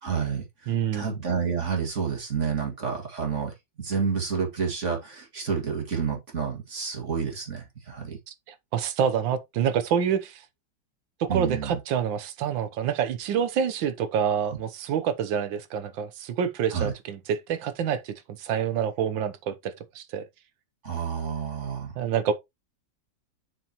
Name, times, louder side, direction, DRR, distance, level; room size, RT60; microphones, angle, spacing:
voice 1, 0.0-3.5 3.8-8.2 11.3-11.8 16.7-16.9 20.8-21.9, right 6 dB, 40° right, 2.2 m, -29 dB
voice 2, 0.7-1.1 8.3-10.4 11.2-20.2 22.0-22.3, right 8 dB, 85° right, 1.6 m, -27 dB
7.7 x 6.1 x 2.9 m
omnidirectional pair, 2.0 m